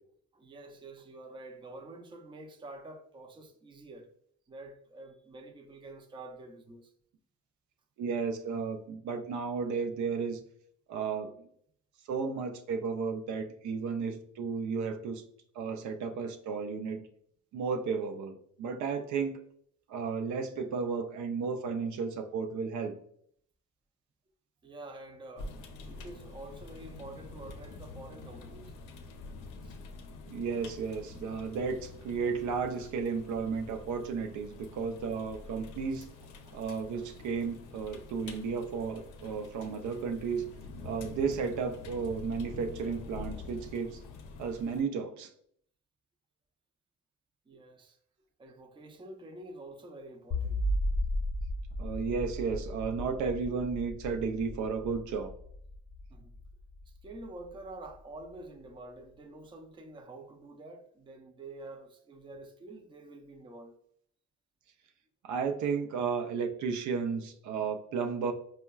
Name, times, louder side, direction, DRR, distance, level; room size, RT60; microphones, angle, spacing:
voice 1, 0.3-4.1 4.5-6.9 24.6-28.7 29.6-29.8 36.4-36.6 47.5-48.0 48.4-50.6 56.1-56.3 56.9-63.8, right 2 dB, 15° right, 0.4 m, -48 dB
voice 2, 8.0-10.4 10.9-11.5 12.1-15.2 15.5-17.1 17.5-19.4 19.9-22.9 30.3-36.1 36.5-40.4 40.8-44.0 44.4-45.3 51.8-55.3 65.2-68.3, right 5 dB, 70° right, 0.5 m, -33 dB
sound 1, 25.4-44.8, left 3 dB, 90° left, 0.5 m, -47 dB
sound 2, 50.3-57.5, left 1 dB, 40° left, 0.6 m, -35 dB
4.4 x 2.1 x 2.2 m
cardioid pair, 90°, 30 cm